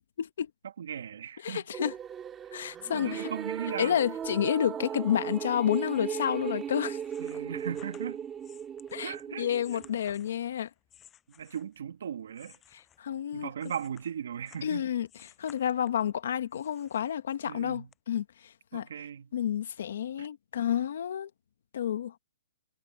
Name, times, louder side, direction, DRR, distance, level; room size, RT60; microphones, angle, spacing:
voice 1, 0.2-0.5 1.4-1.9 2.5-3.3 3.8-7.0 8.9-10.7 12.7-13.5 14.6-18.9 19.3-21.3 21.7-22.1, left 9 dB, 55° left, 1.4 m, -30 dB
voice 2, 0.8-1.6 2.9-4.0 7.2-8.3 9.0-9.5 9.7-9.9 11.4-12.6 13.3-14.8 17.5-17.9 18.7-19.3 20.2-20.3, right 8 dB, 60° right, 1.8 m, -38 dB
sound 1, 1.7-10.0, right 8 dB, 10° right, 1.8 m, -37 dB
sound 2, 6.6-11.9 12.3-14.7 15.1-16.1 16.5-17.6 17.9-18.0, left 10 dB, 10° left, 6.8 m, -58 dB
hypercardioid pair, 180°, 0 cm